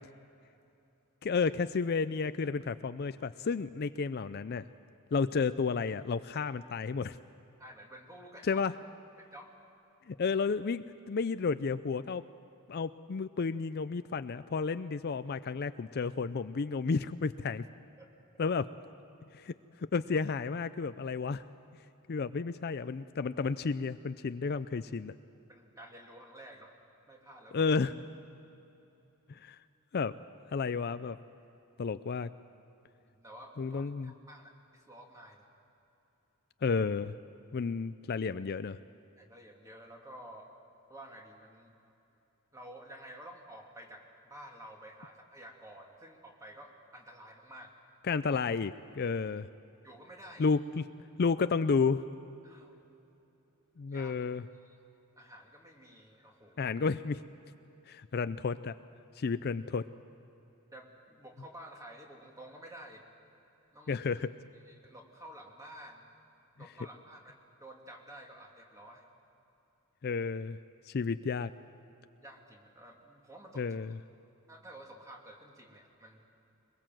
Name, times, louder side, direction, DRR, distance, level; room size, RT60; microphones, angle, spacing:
voice 1, 1.2-4.6 5.1-7.2 8.5-8.7 10.1-12.2 12.7-17.6 18.4-18.7 19.3-19.5 19.9-21.4 22.1-25.1 27.5-27.9 29.3-29.6 29.9-30.1 30.5-31.2 31.8-32.3 33.6-34.1 36.6-37.1 37.5-38.8 48.0-49.5 50.4-50.8 51.2-52.1 53.8-54.4 56.6-57.2 57.9-58.7 59.2-59.9 63.9-64.4 70.0-70.6 70.9-71.5 73.6-74.0, left 5 dB, 45° left, 12 dB, 0.4 m, -32 dB
voice 2, 7.6-8.6 9.2-9.5 18.0-18.1 25.5-26.7 27.1-27.7 33.0-35.4 39.2-40.5 40.9-41.7 42.5-47.7 49.8-50.5 52.4-52.8 53.9-54.1 54.6-54.8 55.2-56.7 60.7-63.0 63.7-64.0 64.6-66.1 66.6-69.1 72.2-73.7 74.5-76.3, right 1 dB, 15° right, 1 dB, 2.5 m, -51 dB
23.0 x 21.5 x 7.6 m, 3.0 s
head